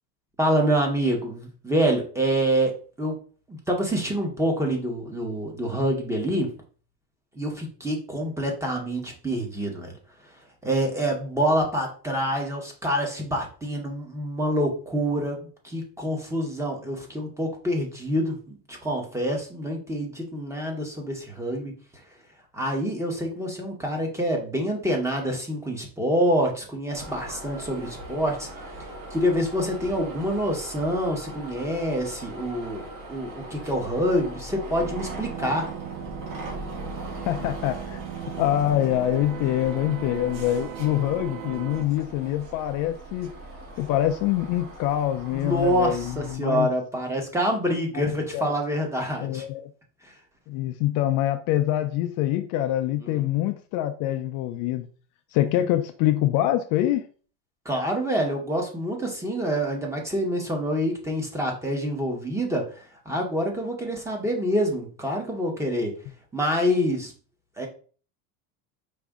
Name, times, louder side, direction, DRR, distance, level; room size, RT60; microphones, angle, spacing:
voice 1, 0.4-3.2 3.5-6.5 7.3-9.9 10.6-21.7 22.5-28.5 29.1-32.8 33.1-35.7 45.3-49.5 50.0-50.1 53.0-53.3 57.6-65.9 66.3-67.1 67.6-67.7, equal, 5° right, 0.8 m, -26 dB
sound 1, 26.9-46.3, right 1 dB, 55° right, 1.8 m, -40 dB
sound 2, 34.8-41.8, right 10 dB, 85° right, 0.5 m, -38 dB
voice 2, 37.3-38.0 38.4-43.3 43.8-46.7 47.9-48.5 49.2-49.7 50.5-54.9 55.3-57.0, left 13 dB, 55° left, 0.4 m, -25 dB
5.0 x 2.7 x 3.5 m
cardioid pair, 155°, 39 cm